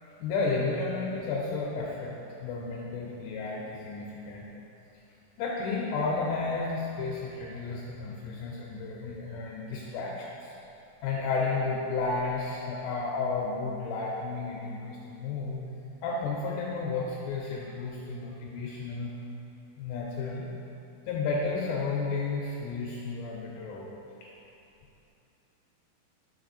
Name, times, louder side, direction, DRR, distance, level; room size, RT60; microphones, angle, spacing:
voice 1, 0.0-4.5 5.4-10.5 11.0-15.6 16.0-19.2 19.8-20.5 21.1-23.9 24.2-24.3, left 4 dB, 85° left, -3 dB, 2.6 m, -32 dB
6.3 x 4.8 x 3.9 m, 2.7 s
omnidirectional pair, 5.3 m